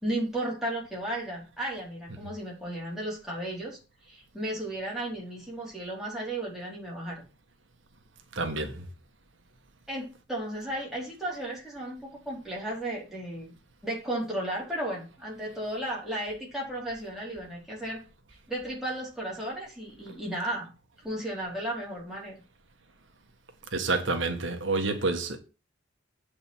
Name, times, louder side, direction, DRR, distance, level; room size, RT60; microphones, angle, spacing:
voice 1, 0.0-3.8 4.0-7.3 9.9-13.5 13.8-18.0 18.5-20.7 21.0-22.4, right 1 dB, ahead, 4.2 m, -34 dB
voice 2, 8.3-8.9 23.7-25.4, right 3 dB, 80° right, 1.7 m, -28 dB
8.3 x 5.4 x 7.3 m
head